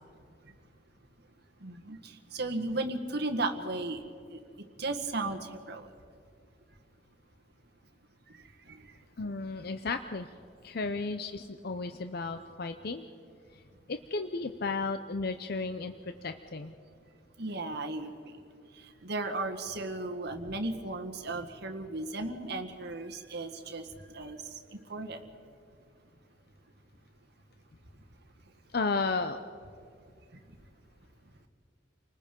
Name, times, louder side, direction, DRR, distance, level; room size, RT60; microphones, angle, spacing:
voice 1, 1.6-4.0 4.3-4.4 4.8-5.9 8.7-8.8 17.4-18.3 19.0-23.8 24.1-24.4 24.9-25.2, right 2 dB, 60° right, 5 dB, 1.7 m, -35 dB
voice 2, 9.2-10.3 10.6-13.0 13.9-16.7 28.7-29.4, left 3 dB, 55° left, 8 dB, 0.7 m, -33 dB
30.0 x 19.5 x 5.3 m, 2.3 s
head